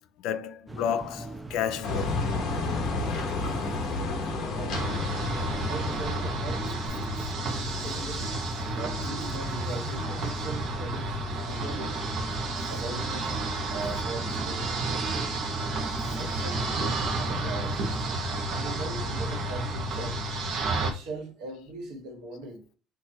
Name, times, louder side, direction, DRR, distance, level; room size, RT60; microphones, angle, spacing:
voice 1, 0.2-2.2 7.2-8.1 14.0-14.1, left 8 dB, 60° left, 0.5 m, -33 dB
sound 1, 0.7-18.2, right 2 dB, 5° right, 0.3 m, -42 dB
sound 2, 1.8-6.8, left 3 dB, 45° left, 1.2 m, -31 dB
voice 2, 4.3-5.0 5.7-7.2 7.8-8.4 8.7-12.1 12.7-15.4 16.2-17.8 18.5-20.2 20.8-22.6, right 2 dB, 70° right, 1.8 m, -40 dB
sound 3, 4.7-20.9, right 2 dB, 40° right, 1.0 m, -31 dB
6.0 x 2.7 x 2.9 m
cardioid pair, 180°, 0 cm